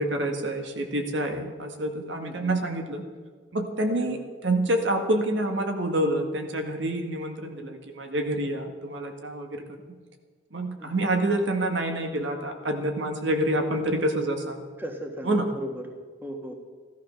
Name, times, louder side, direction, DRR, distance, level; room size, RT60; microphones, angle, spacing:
voice 1, 0.0-3.1 3.5-4.2 4.4-9.6 10.5-14.6 15.2-15.5, right 1 dB, 70° right, 4 dB, 1.8 m, -27 dB
voice 2, 2.2-2.6 3.9-4.3 10.8-11.1 14.8-15.9 16.2-16.5, right 1 dB, 10° right, 3 dB, 1.6 m, -38 dB
15.0 x 13.5 x 6.4 m, 1.5 s
head